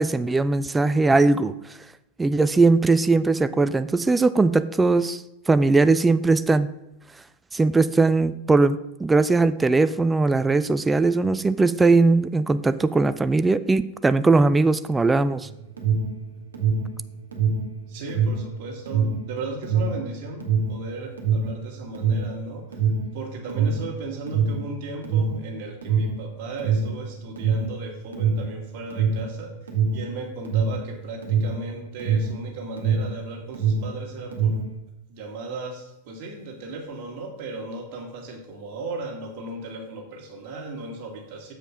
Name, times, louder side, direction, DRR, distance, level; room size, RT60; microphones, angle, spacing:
voice 1, 0.0-1.5 2.2-6.7 7.5-15.5, right 3 dB, 10° right, 14 dB, 0.3 m, -20 dB
Alarm, 15.4-33.2 33.5-34.8, right 5 dB, 70° right, 1.6 m, -24 dB
voice 2, 17.9-22.6 23.1-29.5 29.9-34.6 35.1-41.5, right 2 dB, 45° right, 1 dB, 2.0 m, -36 dB
7.4 x 5.0 x 5.5 m, 0.90 s
figure-of-eight pair, 90°, 0 cm